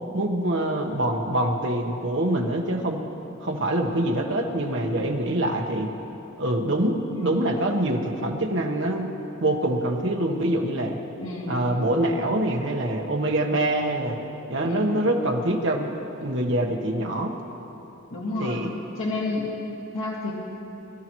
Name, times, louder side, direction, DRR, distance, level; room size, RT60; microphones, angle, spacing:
voice 1, 0.1-3.0 3.4-5.9 6.4-9.1 9.4-11.0 11.5-14.2 14.5-15.9 16.2-17.3 18.4-18.7, right 1 dB, 60° right, 2 dB, 1.2 m, -25 dB
voice 2, 7.1-7.5 11.2-11.6 14.6-15.1 18.1-18.6 19.0-19.5 19.9-20.3, left 2 dB, 85° left, -6 dB, 2.0 m, -30 dB
22.0 x 12.5 x 3.1 m, 3.0 s
head